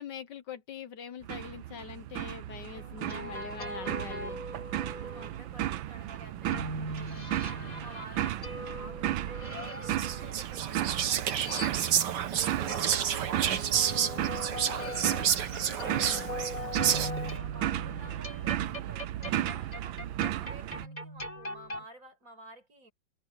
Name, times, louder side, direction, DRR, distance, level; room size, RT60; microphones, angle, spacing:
voice 1, 0.0-4.4 15.7-16.4, left 7 dB, 65° left, 1.6 m, -44 dB
sound 1, 1.2-20.8, right 12 dB, 85° right, 1.6 m, -35 dB
sound 2, 2.7-5.3 6.5-12.2 12.7-21.9, equal, 20° left, 4.5 m, -40 dB
voice 2, 2.9-4.3 4.8-12.1 12.3-13.7 14.1-15.1 15.7-20.0 20.3-22.9, right 2 dB, 45° right, 7.8 m, -52 dB
Whispering, 9.9-17.3, right 9 dB, 65° right, 1.7 m, -30 dB
omnidirectional pair, 2.1 m